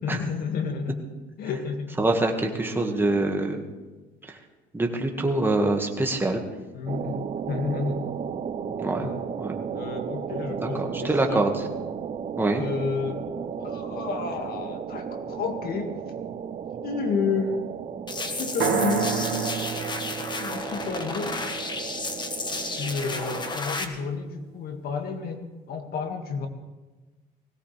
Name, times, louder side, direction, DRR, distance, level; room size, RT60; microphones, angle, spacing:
voice 1, 0.0-1.0 1.4-1.9 6.7-7.2 7.5-8.0 9.0-9.2 9.7-11.5 12.5-13.2 13.6-16.0 16.8-17.6 18.3-19.6 20.3-21.5 22.7-26.5, left 5 dB, 60° left, 5 dB, 2.0 m, -31 dB
voice 2, 2.0-3.6 4.7-6.4 8.8-9.1 9.4-9.6 10.6-11.5 12.4-12.6, right 2 dB, 10° right, 2 dB, 1.8 m, -24 dB
sound 1, 6.9-23.6, right 7 dB, 45° right, 0.8 m, -35 dB
sound 2, 18.1-23.8, left 3 dB, 25° left, 1.4 m, -32 dB
sound 3, 18.6-22.5, right 8 dB, 90° right, 2.0 m, -30 dB
20.5 x 17.0 x 3.4 m, 1.2 s
cardioid pair, 110°, 17 cm